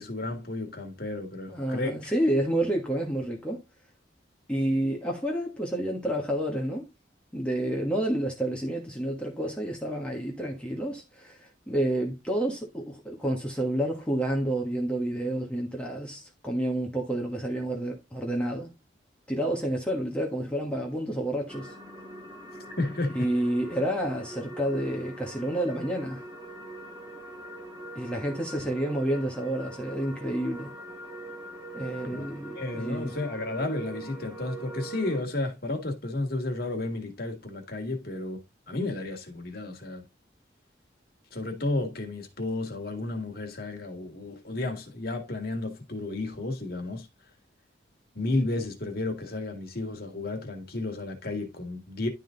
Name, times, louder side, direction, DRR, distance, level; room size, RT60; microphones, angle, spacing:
voice 1, 0.0-2.1 22.6-23.3 32.1-32.3 32.5-38.4 38.7-40.0 41.3-47.1 48.2-52.1, left 2 dB, 50° left, 2.1 m, -32 dB
voice 2, 1.5-3.6 4.5-6.9 7.3-18.7 19.3-21.7 23.1-26.2 27.9-30.7 31.7-33.2, right 1 dB, 5° left, 1.3 m, -29 dB
sound 1, 21.5-35.2, right 2 dB, 15° right, 2.3 m, -43 dB
11.5 x 3.8 x 3.9 m
head